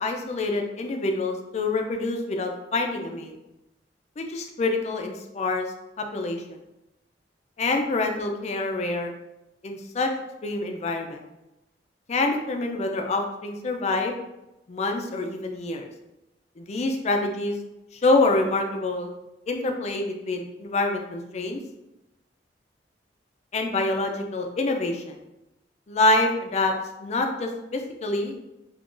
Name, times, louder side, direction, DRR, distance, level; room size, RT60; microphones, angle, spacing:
voice 1, 0.0-3.3 4.2-5.7 6.0-6.4 7.6-9.1 9.6-10.1 10.4-11.2 12.1-14.1 14.7-15.9 16.6-17.6 18.0-19.1 19.5-21.6 23.5-25.2 25.9-26.7 27.0-28.4, left 2 dB, 40° left, 4 dB, 0.4 m, -26 dB
2.8 x 2.5 x 3.7 m, 0.93 s
head